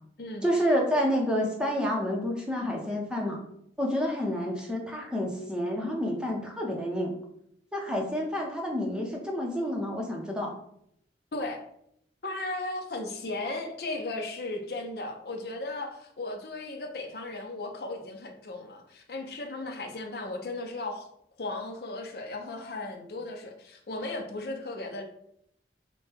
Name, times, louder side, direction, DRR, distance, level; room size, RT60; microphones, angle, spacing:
voice 1, 0.4-3.4 3.8-7.1 7.7-10.5, equal, 5° right, -1 dB, 0.7 m, -29 dB
voice 2, 11.3-11.6 12.2-21.1 21.4-25.0, left 2 dB, 60° left, 4 dB, 0.7 m, -36 dB
5.4 x 2.2 x 4.3 m, 0.72 s
head